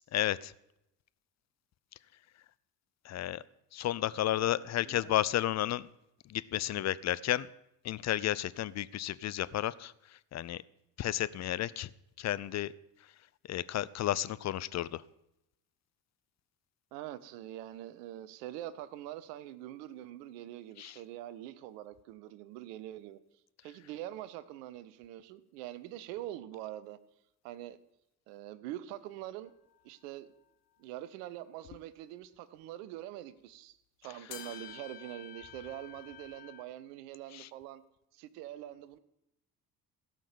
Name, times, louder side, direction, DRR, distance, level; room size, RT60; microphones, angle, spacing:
voice 1, 0.1-0.5 3.0-3.4 3.7-5.9 6.3-7.5 7.8-9.9 10.3-10.6 11.0-11.9 12.2-12.7 13.5-15.0 20.8-21.0 37.3-37.5, left 13 dB, 35° left, 18 dB, 0.5 m, -32 dB
voice 2, 4.1-5.2 16.9-23.2 23.6-27.0 27.4-27.8 28.3-29.5 29.8-30.3 30.8-37.8 38.1-39.0, right 13 dB, 70° right, 16 dB, 0.9 m, -44 dB
sound 1, 29.5-29.8 34.3-36.6, left 10 dB, 75° left, 1.3 m, -49 dB
16.0 x 5.9 x 6.9 m, 0.82 s
figure-of-eight pair, 50°, 50 cm